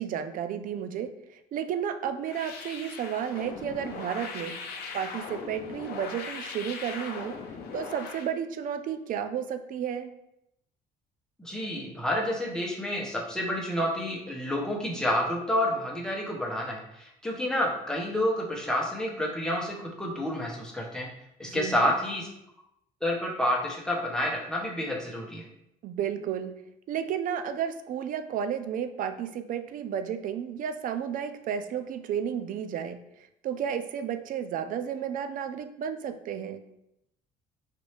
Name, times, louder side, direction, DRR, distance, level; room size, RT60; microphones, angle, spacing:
voice 1, 0.0-7.4 7.7-10.1 21.4-21.9 25.8-33.0 33.4-36.7, right 8 dB, 55° right, 10 dB, 0.4 m, -32 dB
sound 1, 2.2-8.3, left 5 dB, 70° left, 0.6 m, -39 dB
voice 2, 11.4-21.1 21.4-22.3 23.0-25.4, left 1 dB, 5° left, -2 dB, 0.9 m, -29 dB
4.2 x 2.6 x 3.2 m, 0.81 s
cardioid pair, 110°, 17 cm